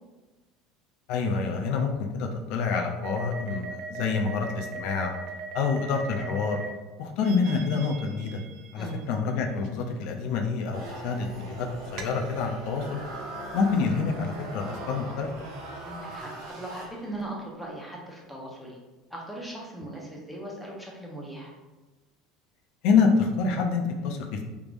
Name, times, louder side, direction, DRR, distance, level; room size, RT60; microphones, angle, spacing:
voice 1, 1.1-5.1 5.5-6.6 7.0-8.4 8.7-13.0 13.5-15.3 22.8-24.4, left 5 dB, 65° left, 3 dB, 0.4 m, -27 dB
sound 1, 3.0-6.7 7.2-9.4 12.0-13.0, right 5 dB, 60° right, 0.4 m, -40 dB
sound 2, 10.7-17.3, right 2 dB, 80° right, 1.2 m, -40 dB
voice 2, 15.8-18.8 19.1-21.5, right 1 dB, ahead, -3 dB, 0.8 m, -39 dB
3.4 x 3.2 x 2.5 m, 1.2 s
supercardioid pair, 120°, 0 cm